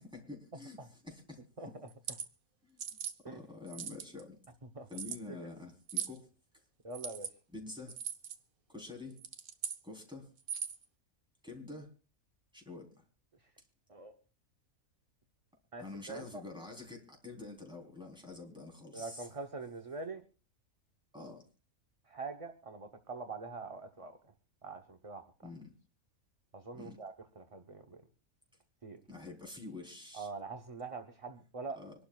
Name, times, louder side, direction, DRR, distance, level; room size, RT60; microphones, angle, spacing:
voice 1, 0.0-1.5 2.7-3.0 3.3-4.4 4.9-6.3 7.5-8.0 8.7-9.2 9.8-10.3 11.4-11.9 12.5-13.0 15.8-19.3 21.1-21.5 25.4-25.7 26.7-27.0 29.1-30.3 31.8-31.9, left 3 dB, 5° right, 1 dB, 3.7 m, -47 dB
sound 1, 1.9-2.3 2.8-3.2 3.7-4.2 4.9-5.2 5.9-6.2 6.9-7.3 7.9-8.4 9.1-9.8 10.4-10.8, right 9 dB, 80° right, 1.5 m, -39 dB
voice 2, 6.8-7.3 13.9-14.1 15.7-16.4 18.9-20.2 22.1-24.2 24.6-25.3 26.5-28.0 28.8-29.0 30.1-31.8, right 3 dB, 30° right, 5 dB, 0.9 m, -44 dB
25.5 x 12.0 x 2.4 m, 0.35 s
omnidirectional pair, 1.4 m